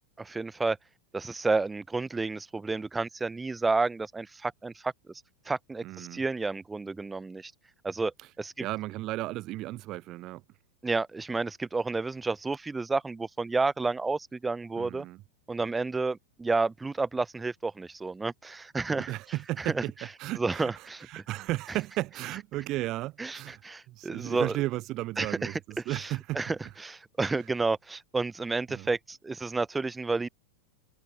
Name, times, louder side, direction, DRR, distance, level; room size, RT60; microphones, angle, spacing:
voice 1, 0.2-0.8 1.1-4.9 5.5-7.5 7.8-8.6 10.8-15.1 15.5-19.1 19.6-19.8 20.4-21.1 23.2-24.5 25.2-25.5 25.9-26.1 26.3-30.3, right 3 dB, 10° right, 1.0 m, -30 dB
voice 2, 5.8-6.2 8.2-8.3 8.6-10.4 14.8-15.2 18.9-19.9 20.2-26.8 27.3-27.5 28.7-28.9, right 17 dB, 35° right, 0.6 m, -35 dB
figure-of-eight pair, 90°, 0 cm